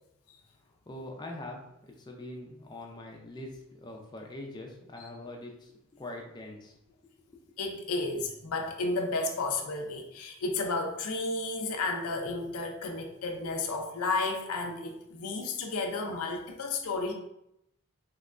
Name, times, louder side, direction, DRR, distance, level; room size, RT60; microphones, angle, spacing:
voice 1, 0.9-6.8 7.3-7.4, left 1 dB, 20° left, 0 dB, 0.4 m, -43 dB
voice 2, 7.6-17.1, left 3 dB, 80° left, 3 dB, 0.5 m, -32 dB
3.2 x 2.9 x 2.5 m, 0.80 s
head